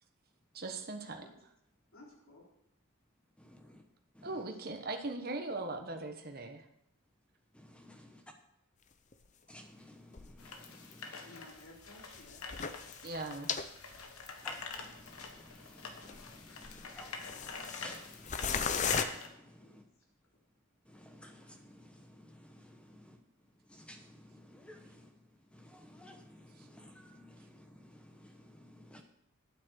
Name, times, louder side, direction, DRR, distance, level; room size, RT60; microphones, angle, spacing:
voice 1, 0.5-1.2 4.2-6.6 13.0-13.6, right 2 dB, 45° right, 5 dB, 1.2 m, -39 dB
voice 2, 1.9-2.5 4.2-4.4 11.3-12.4 14.5-14.6 19.6-19.8, left 1 dB, 70° left, -2 dB, 3.7 m, -56 dB
voice 3, 3.4-3.8 4.1-4.3 7.5-8.2 9.5-11.4 14.4-19.8 20.9-23.2 23.7-25.1 25.5-29.0, left 1 dB, 5° left, 4 dB, 1.0 m, -55 dB
sound 1, 9.1-9.2 10.1-10.3 10.7-10.8 12.1-13.7 13.9-14.0 14.7-14.8 15.3-15.4 16.0-16.4 16.6-18.0 18.2-19.0, left 6 dB, 35° left, 0.6 m, -36 dB
sound 2, 10.4-19.3, left 4 dB, 85° left, 1.6 m, -46 dB
9.3 x 8.5 x 6.4 m, 0.77 s
head